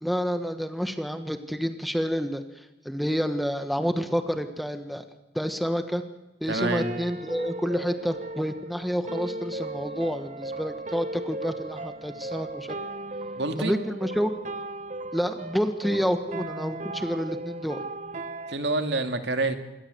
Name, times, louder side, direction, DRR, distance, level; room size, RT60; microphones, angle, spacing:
voice 1, 0.0-5.0 5.3-6.0 6.4-12.8 13.6-14.3 15.1-17.8, equal, ahead, 8 dB, 1.3 m, -29 dB
sound 1, 6.5-18.6, right 2 dB, 40° right, 1.3 m, -37 dB
voice 2, 6.5-6.9 13.4-13.8 18.5-19.6, right 2 dB, 65° right, 7 dB, 2.6 m, -27 dB
27.5 x 21.5 x 7.9 m, 1.0 s
head